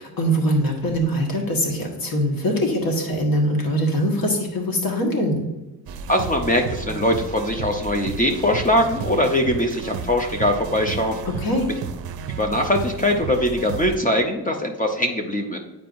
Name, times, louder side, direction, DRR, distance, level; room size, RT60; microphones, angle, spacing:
voice 1, 0.0-5.4 11.2-11.7, equal, 55° left, 1 dB, 1.5 m, -22 dB
sound 1, 5.9-14.0, right 6 dB, 65° right, 0.5 m, -32 dB
voice 2, 6.1-11.2 12.4-15.6, left 1 dB, 20° left, 4 dB, 0.5 m, -21 dB
9.0 x 4.7 x 2.6 m, 1.0 s
cardioid pair, 150°, 40 cm